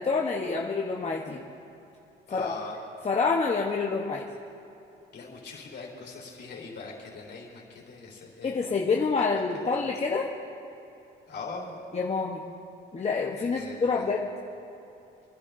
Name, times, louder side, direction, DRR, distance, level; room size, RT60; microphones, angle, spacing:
voice 1, 0.0-1.5 2.3-2.5 3.0-4.3 8.4-10.3 11.9-12.4 12.9-14.3, left 4 dB, 35° left, -2 dB, 1.0 m, -27 dB
voice 2, 2.3-2.8 5.1-8.7 9.7-9.9 11.3-11.8 13.4-14.1, left 4 dB, 60° left, -1 dB, 3.7 m, -41 dB
28.0 x 10.5 x 2.6 m, 2.8 s
cardioid pair, 90°, 20 cm